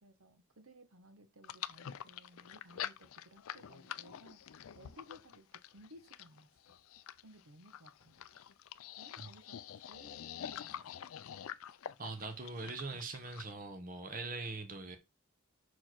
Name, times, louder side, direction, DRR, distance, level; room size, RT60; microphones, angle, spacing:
voice 1, 0.0-6.8 7.2-8.2 9.0-11.1, equal, 80° right, 1.1 m, -59 dB
sound 1, 1.4-13.5, left 10 dB, 85° left, 0.4 m, -46 dB
voice 2, 12.0-15.0, right 3 dB, 40° right, 0.9 m, -42 dB
6.3 x 4.5 x 4.5 m
head